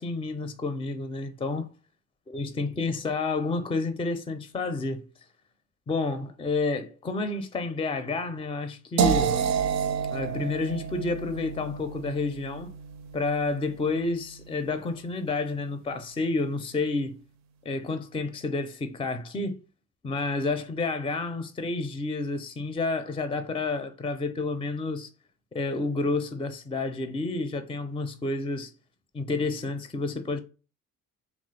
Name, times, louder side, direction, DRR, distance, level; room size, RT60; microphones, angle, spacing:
voice 1, 0.0-1.7 2.3-5.0 5.9-9.4 10.1-12.7 13.1-17.2 17.7-19.6 20.0-25.1 25.5-28.7 29.1-30.4, left 3 dB, 20° left, 0.4 m, -30 dB
sound 1, 9.0-14.9, right 7 dB, 65° right, 0.4 m, -30 dB
3.2 x 2.0 x 3.1 m
cardioid pair, 90°, 30 cm